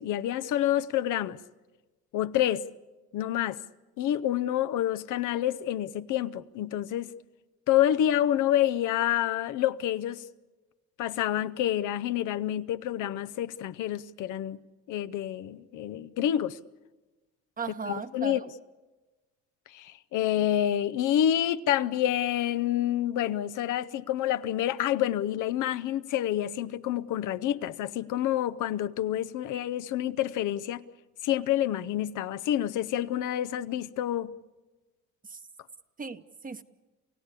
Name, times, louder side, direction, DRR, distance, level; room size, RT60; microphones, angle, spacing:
voice 1, 0.0-1.4 2.1-2.7 3.1-3.6 4.0-7.1 7.7-10.2 11.0-14.6 14.9-16.6 17.9-18.4 19.7-30.8 31.2-34.3, left 11 dB, 85° left, 0.7 m, -28 dB
voice 2, 17.6-18.5 35.3-35.4 36.0-36.6, right 5 dB, 30° right, 0.9 m, -37 dB
28.5 x 16.0 x 8.3 m
cardioid pair, 90°, 30 cm